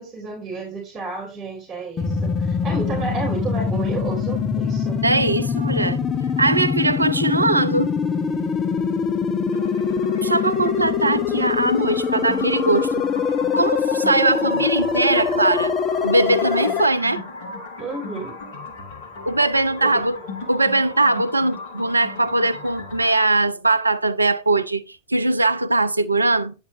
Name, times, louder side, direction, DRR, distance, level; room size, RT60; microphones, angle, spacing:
voice 1, 0.0-5.0 17.8-18.4 19.8-20.0, right 3 dB, 15° right, 3.1 m, -31 dB
sound 1, 2.0-16.9, left 6 dB, 25° left, 0.6 m, -23 dB
voice 2, 5.0-6.0 6.4-7.9 10.2-13.0 13.6-15.7 16.0-17.2 19.3-20.2 20.5-26.5, right 2 dB, 80° right, 0.5 m, -20 dB
sound 2, 9.5-23.1, left 3 dB, 55° left, 2.3 m, -35 dB
9.4 x 7.1 x 2.7 m
figure-of-eight pair, 90°, 0 cm